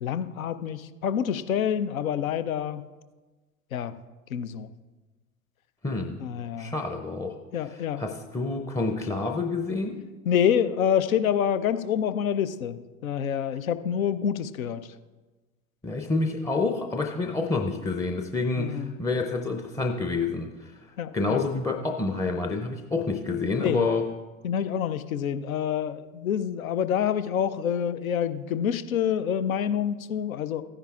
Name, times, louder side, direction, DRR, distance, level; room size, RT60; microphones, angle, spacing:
voice 1, 0.0-2.9 3.7-3.9 4.3-4.7 6.2-6.8 7.5-8.0 10.3-14.9 18.6-18.9 21.0-21.4 23.6-23.8 24.4-30.6, left 8 dB, 80° left, 13 dB, 0.6 m, -27 dB
voice 2, 5.8-6.2 6.6-7.3 8.0-10.0 15.8-20.7 21.1-24.1, left 3 dB, 10° left, 3 dB, 0.5 m, -28 dB
14.0 x 10.0 x 2.4 m, 1.2 s
figure-of-eight pair, 75°, 41 cm